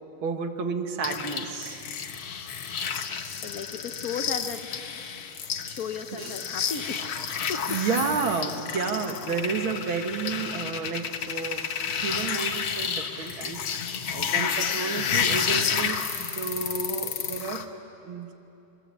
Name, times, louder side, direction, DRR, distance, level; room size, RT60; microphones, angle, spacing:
voice 1, 0.2-1.9 6.2-6.3 7.7-11.7 12.0-13.6 14.1-17.6 18.0-18.3, right 5 dB, 90° right, 5 dB, 2.5 m, -31 dB
sound 1, 1.0-17.6, left 7 dB, 85° left, 2.1 m, -31 dB
voice 2, 3.4-4.7 5.6-7.8, left 6 dB, 55° left, 8 dB, 1.2 m, -35 dB
Bowed string instrument, 6.4-9.8, left 5 dB, 55° right, 7.8 m, -52 dB
26.5 x 21.5 x 8.5 m, 2.8 s
omnidirectional pair, 2.2 m